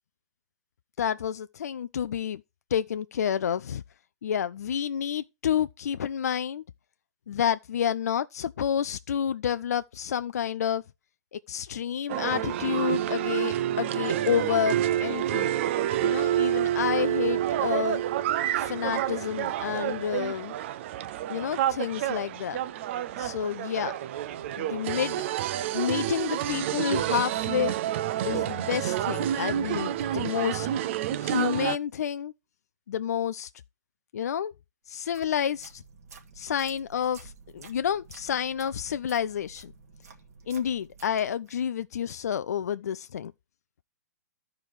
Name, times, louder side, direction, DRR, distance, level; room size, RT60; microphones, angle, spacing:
voice 1, 1.0-2.4 2.7-3.8 4.2-6.6 7.3-10.8 11.3-15.5 16.0-18.0 18.6-20.5 21.3-22.6 23.2-24.0 24.6-25.2 25.7-27.7 28.2-30.7 31.2-32.3 32.9-33.5 34.1-34.5 34.9-35.8 36.4-39.7 40.5-43.3, left 8 dB, 70° left, 0.4 m, -29 dB
sound 1, 12.1-31.8, right 11 dB, 50° right, 0.6 m, -28 dB
sound 2, 34.9-41.6, right 5 dB, 70° right, 2.1 m, -51 dB
13.0 x 4.7 x 4.7 m
hypercardioid pair, 125°, 9 cm